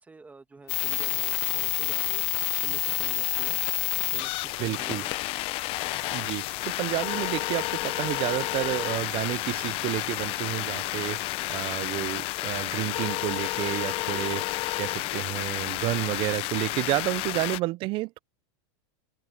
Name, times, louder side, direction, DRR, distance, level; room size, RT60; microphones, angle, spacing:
voice 1, 0.0-3.6 4.1-5.1 11.4-11.7 14.8-15.2 17.3-17.5, right 3 dB, 10° right, 1.6 m, -49 dB
sound 1, 0.6-17.3, left 8 dB, 25° left, 6.5 m, -62 dB
sound 2, 0.7-17.6, left 20 dB, 40° left, 0.6 m, -30 dB
sound 3, 2.5-13.2, right 26 dB, 60° right, 7.0 m, -57 dB
voice 2, 4.6-5.1 6.1-18.2, right 19 dB, 35° right, 0.4 m, -30 dB
open air
supercardioid pair, 145°, 15 cm